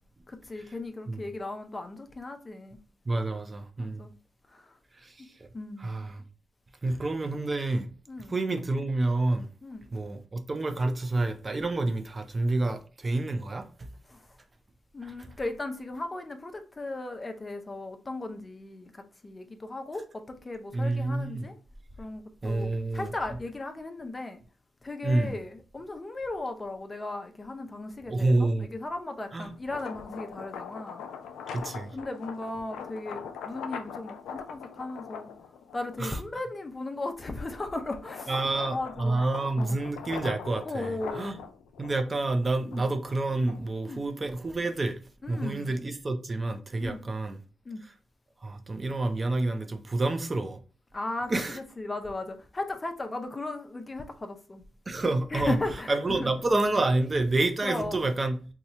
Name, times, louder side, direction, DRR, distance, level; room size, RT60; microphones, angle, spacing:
voice 1, 0.3-2.8 3.8-4.2 4.5-4.7 5.5-5.9 6.8-7.0 8.1-8.3 9.6-9.8 14.1-14.3 14.9-21.5 22.0-24.4 24.8-31.0 31.9-35.3 35.7-38.4 38.7-39.2 39.6-39.8 40.6-41.4 42.7-42.9 43.9-44.0 45.2-45.7 46.8-47.1 47.7-47.8 50.9-54.6 55.3-56.3 57.6-58.1, left 2 dB, 30° left, 0.6 m, -36 dB
voice 2, 3.1-4.0 5.0-5.1 5.8-6.2 6.8-7.9 8.3-9.5 9.9-13.7 15.0-15.1 20.7-21.5 22.4-23.1 25.0-25.4 28.1-28.7 29.3-29.5 31.5-31.9 36.0-36.2 38.3-41.4 41.8-44.9 45.3-47.4 48.4-50.6 51.3-51.6 54.9-55.6 55.9-58.4, right 2 dB, 35° right, 0.6 m, -28 dB
sound 1, 29.5-36.1 36.7-43.8, left 7 dB, 90° left, 0.4 m, -42 dB
2.8 x 2.3 x 4.2 m
cardioid pair, 60°, 0 cm